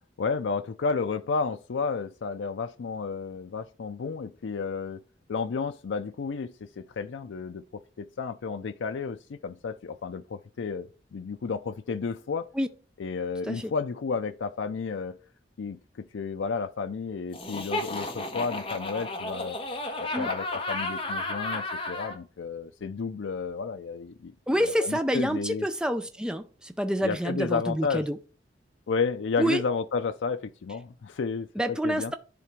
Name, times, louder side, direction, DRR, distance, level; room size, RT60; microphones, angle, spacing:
voice 1, 0.2-5.0 5.3-12.5 13.0-15.2 15.6-19.6 20.0-24.3 24.6-25.7 27.0-28.1 28.9-32.1, left 5 dB, 80° left, 0.4 m, -32 dB
Laughter, 17.3-22.2, left 2 dB, 30° left, 1.4 m, -33 dB
voice 2, 24.5-28.2 29.4-29.6 31.6-32.1, equal, 5° right, 0.5 m, -27 dB
10.5 x 3.8 x 4.5 m
head